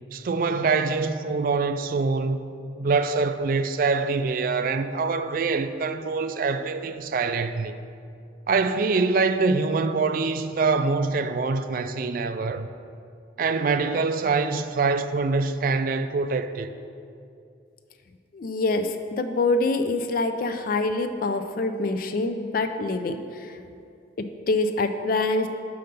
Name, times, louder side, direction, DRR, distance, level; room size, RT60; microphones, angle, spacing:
voice 1, 0.1-2.5 2.8-7.8 8.5-12.7 13.4-16.7, right 4 dB, 45° right, 0.3 m, -24 dB
voice 2, 18.3-23.6 24.2-25.5, left 2 dB, 45° left, 0.4 m, -25 dB
5.5 x 5.2 x 6.5 m
head